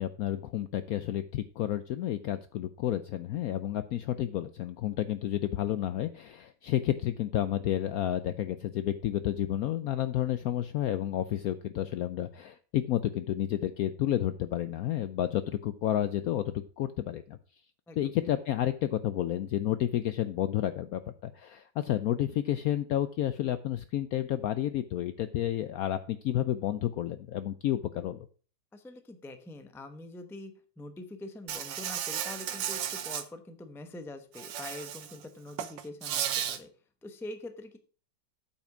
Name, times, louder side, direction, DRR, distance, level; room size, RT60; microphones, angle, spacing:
voice 1, 0.0-17.4 18.0-28.3, left 12 dB, 70° left, 12 dB, 0.8 m, -31 dB
voice 2, 28.7-36.7 37.0-37.8, left 2 dB, 5° left, 8 dB, 0.5 m, -44 dB
Insect, 31.5-33.2 34.3-35.2 35.5-36.6, right 10 dB, 90° right, 1.6 m, -34 dB
8.7 x 5.8 x 5.9 m, 0.40 s
omnidirectional pair, 2.0 m